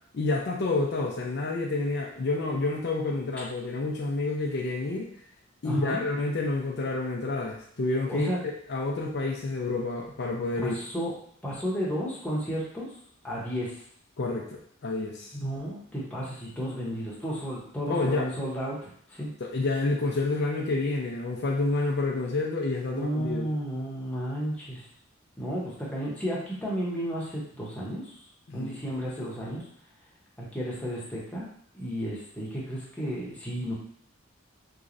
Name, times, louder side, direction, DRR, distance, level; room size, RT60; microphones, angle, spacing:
voice 1, 0.1-5.1 5.6-8.3 8.7-10.8 14.2-15.4 17.9-18.3 19.4-23.5 28.5-28.7, left 2 dB, 55° left, 0 dB, 0.5 m, -29 dB
voice 2, 5.6-6.0 8.1-8.4 10.6-11.1 11.4-12.9 13.2-13.8 15.3-19.3 22.9-24.9 25.4-28.2 28.5-29.6 30.5-31.5 31.7-33.7, equal, 5° left, -6 dB, 0.9 m, -32 dB
3.7 x 3.1 x 2.6 m, 0.62 s
head